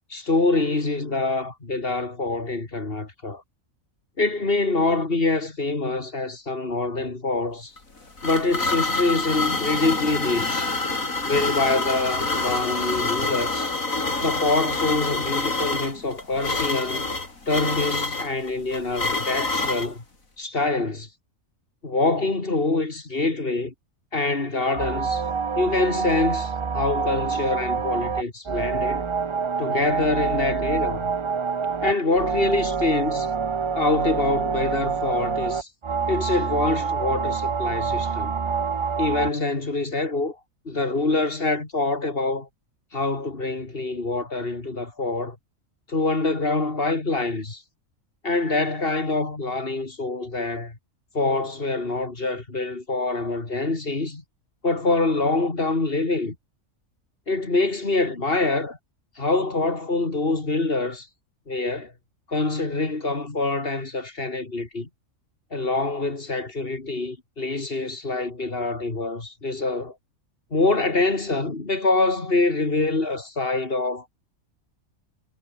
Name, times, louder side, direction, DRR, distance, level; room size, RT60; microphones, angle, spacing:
voice 1, 0.1-3.4 4.2-7.7 8.2-10.7 11.2-13.7 14.2-17.1 17.5-20.0 20.4-21.1 21.8-23.7 24.1-25.2 25.6-29.0 29.6-31.1 31.8-33.4 33.7-35.7 36.1-38.3 39.0-40.4 40.6-42.5 42.9-45.4 45.9-47.6 48.2-50.8 51.1-54.2 54.6-56.4 57.3-58.8 59.2-61.1 61.5-61.9 62.3-64.9 65.5-69.9 70.5-74.0, left 3 dB, 45° left, 3.0 m, -25 dB
sound 1, 7.8-19.9, left 3 dB, 80° left, 4.6 m, -27 dB
sound 2, 24.7-39.3, right 6 dB, 45° right, 0.3 m, -26 dB
omnidirectional pair, 1.4 m